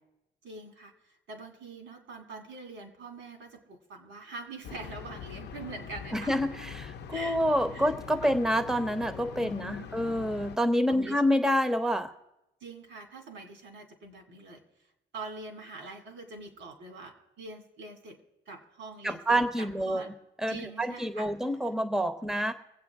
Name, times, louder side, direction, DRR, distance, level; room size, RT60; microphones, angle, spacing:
voice 1, 0.4-6.3 7.1-7.4 7.7-7.9 8.2-8.3 9.4-9.9 10.9-11.2 12.6-14.6 15.1-18.2 18.5-20.1 20.5-21.3, right 3 dB, 75° right, 4 dB, 2.5 m, -44 dB
sound 1, 4.6-10.6, left 7 dB, 60° left, 0.6 m, -43 dB
voice 2, 6.1-12.1 19.0-20.1 20.4-22.5, equal, 5° right, 9 dB, 0.8 m, -27 dB
24.0 x 8.3 x 3.6 m, 0.92 s
cardioid pair, 120°, 19 cm